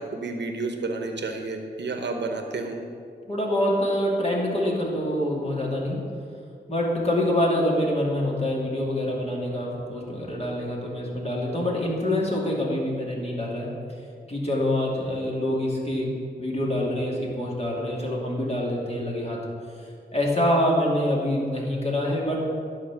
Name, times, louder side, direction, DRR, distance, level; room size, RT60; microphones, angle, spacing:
voice 1, 0.0-2.8, right 3 dB, 80° right, 4 dB, 1.0 m, -31 dB
voice 2, 3.3-6.0 6.7-13.7 14.3-19.4 20.1-22.4, left 1 dB, 35° left, -3 dB, 2.6 m, -26 dB
11.0 x 4.4 x 7.3 m, 2.3 s
cardioid pair, 50°, 18 cm